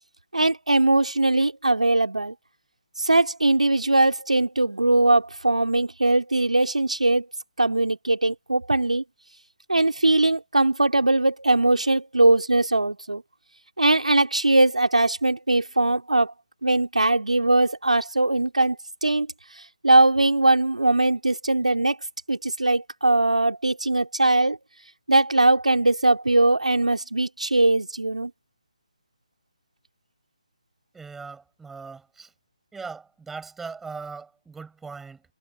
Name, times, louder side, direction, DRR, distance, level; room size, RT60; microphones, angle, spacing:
voice 1, 0.3-2.3 3.0-7.2 7.6-9.0 9.7-13.2 13.8-16.3 16.6-18.8 19.0-19.3 19.8-22.0 22.3-24.6 25.1-28.3, right 2 dB, 75° right, 3.4 m, -20 dB
voice 2, 30.9-32.3 32.7-35.2, right 5 dB, 5° right, 6.3 m, -39 dB
figure-of-eight pair, 145°, 4 cm